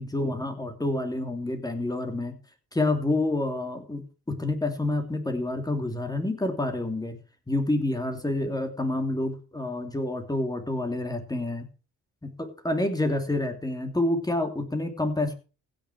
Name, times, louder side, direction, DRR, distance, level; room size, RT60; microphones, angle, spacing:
voice 1, 0.0-2.4 2.7-7.2 7.5-11.7 12.2-15.3, left 2 dB, 10° left, 6 dB, 2.7 m, -28 dB
16.0 x 6.5 x 6.0 m, 0.34 s
cardioid pair, 90°, 30 cm